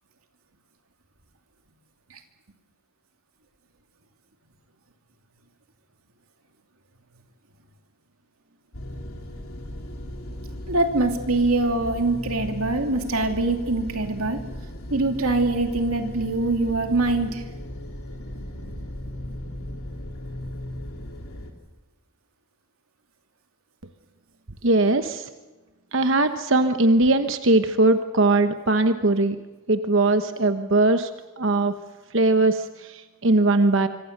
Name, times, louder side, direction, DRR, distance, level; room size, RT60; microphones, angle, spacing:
sound 1, 8.7-21.5, left 1 dB, 85° left, 3.2 m, -36 dB
voice 1, 10.7-14.4 14.9-17.4, right 2 dB, 85° right, 5 dB, 2.7 m, -23 dB
voice 2, 24.6-25.3 25.9-29.4 29.7-31.1 31.4-31.7 32.1-33.9, right 2 dB, 60° right, 8 dB, 1.1 m, -20 dB
26.0 x 24.5 x 6.7 m, 1.2 s
head